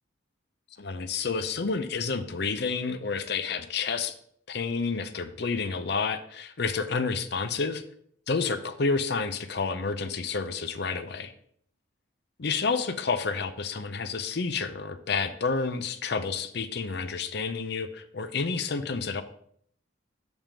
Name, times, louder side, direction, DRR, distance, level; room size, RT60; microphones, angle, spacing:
voice 1, 0.8-4.1 4.5-7.8 8.3-11.3 12.4-19.2, left 4 dB, 55° left, 10 dB, 0.6 m, -29 dB
7.3 x 3.6 x 6.2 m, 0.64 s
head